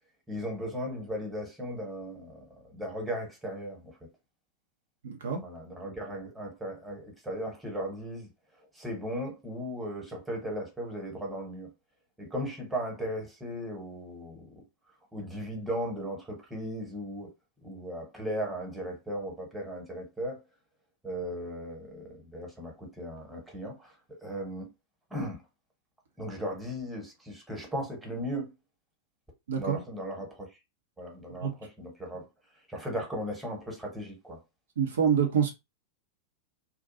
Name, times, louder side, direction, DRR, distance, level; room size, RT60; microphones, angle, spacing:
voice 1, 0.3-3.9 5.4-8.3 8.7-11.7 12.2-14.5 15.1-17.3 17.6-20.4 21.0-24.7 25.1-25.4 26.2-28.5 29.6-30.5 31.0-32.3 32.7-34.4, equal, 5° right, 1.2 m, -37 dB
voice 2, 5.0-5.4 29.5-29.8 31.3-31.5 34.8-35.5, right 7 dB, 65° right, 0.7 m, -26 dB
2.5 x 2.2 x 2.7 m
figure-of-eight pair, 90°, 0 cm